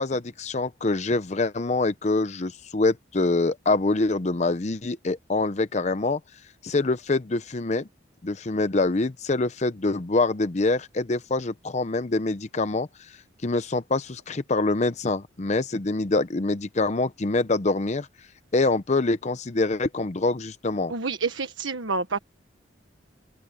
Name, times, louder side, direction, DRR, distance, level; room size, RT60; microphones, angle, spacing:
voice 1, 0.0-6.2 6.6-7.9 8.2-12.9 13.4-18.1 18.5-20.9, left 3 dB, 35° left, 0.7 m, -25 dB
voice 2, 20.9-22.2, right 4 dB, 85° right, 1.4 m, -28 dB
open air
head